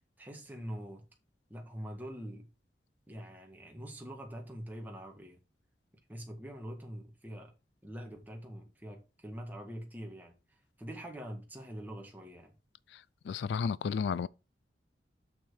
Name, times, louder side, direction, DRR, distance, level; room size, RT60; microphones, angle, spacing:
voice 1, 0.2-1.0 1.5-2.5 3.1-5.4 6.1-7.5 7.8-10.3 10.8-12.5, equal, 10° right, 1.7 m, -44 dB
voice 2, 12.9-14.3, left 6 dB, 80° left, 0.3 m, -33 dB
6.6 x 6.0 x 4.7 m
head